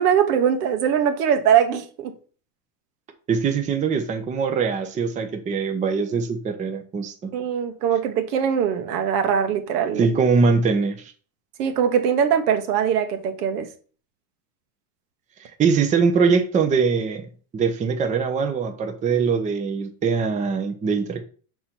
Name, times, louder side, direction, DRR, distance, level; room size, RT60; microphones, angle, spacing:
voice 1, 0.0-2.1 7.3-10.1 11.6-13.7, right 8 dB, 75° right, 1.3 m, -21 dB
voice 2, 3.3-7.3 10.0-11.1 15.4-17.3 17.5-21.2, right 5 dB, 15° right, 0.6 m, -22 dB
5.6 x 3.8 x 4.4 m
supercardioid pair, 125°, 47 cm